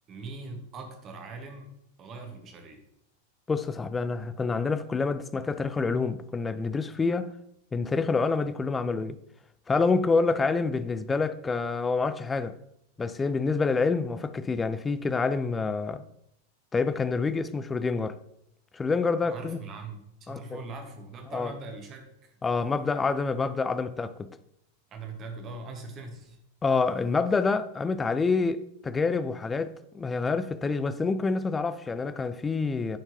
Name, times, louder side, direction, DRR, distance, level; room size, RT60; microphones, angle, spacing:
voice 1, 0.1-1.7 2.0-2.8 19.2-22.4 24.9-26.4, right 3 dB, 30° right, 1.3 m, -41 dB
voice 2, 3.5-7.3 7.7-9.2 9.7-12.6 13.0-16.0 16.7-18.2 18.7-19.6 20.3-20.6 21.3-21.5 22.4-24.4 26.6-33.0, left 4 dB, 15° left, 0.4 m, -27 dB
10.5 x 4.4 x 2.8 m
figure-of-eight pair, 90°, 0 cm